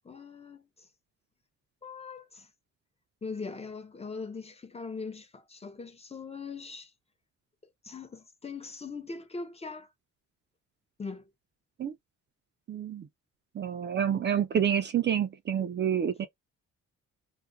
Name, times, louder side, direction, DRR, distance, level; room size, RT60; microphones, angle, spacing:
voice 1, 0.0-0.9 1.8-2.5 3.2-6.9 7.8-9.9 11.0-11.2, left 4 dB, 20° left, 0.6 m, -41 dB
voice 2, 12.7-13.1 13.6-16.3, right 9 dB, 35° right, 0.4 m, -28 dB
2.4 x 2.1 x 2.5 m
cardioid pair, 90°, 30 cm